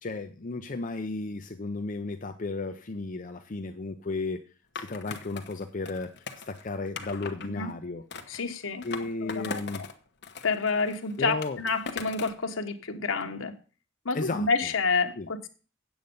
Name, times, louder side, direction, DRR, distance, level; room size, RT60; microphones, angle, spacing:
voice 1, 0.0-4.4 4.8-6.1 6.5-8.0 8.8-9.8 11.2-11.6 14.1-14.5 15.2-15.3, left 3 dB, 40° left, 6 dB, 0.7 m, -34 dB
Skateboard, 4.8-7.5 8.1-9.9 10.2-12.4, left 5 dB, 60° left, 1.1 m, -40 dB
voice 2, 8.3-8.9 9.2-9.6 10.4-13.5 14.0-15.5, left 4 dB, 90° left, 5 dB, 1.3 m, -29 dB
8.7 x 7.9 x 5.4 m, 0.37 s
head